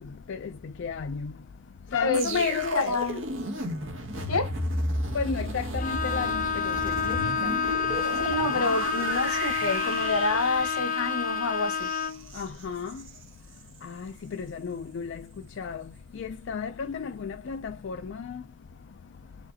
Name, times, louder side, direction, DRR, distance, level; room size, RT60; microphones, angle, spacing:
voice 1, 0.8-1.3 1.9-2.9 5.1-6.7 7.1-7.2 12.4-12.9 13.8-15.2 15.6-15.8 16.2-18.2, left 6 dB, 60° left, 0.3 m, -32 dB
voice 2, 2.0-3.2 4.3-4.5 8.2-11.9, left 3 dB, 90° left, 1.0 m, -28 dB
sound 1, 2.1-13.2 13.6-13.8, right 1 dB, 65° right, 1.2 m, -33 dB
Bowed string instrument, 5.8-12.3, left 6 dB, 40° left, 0.8 m, -29 dB
5.0 x 3.0 x 2.7 m
head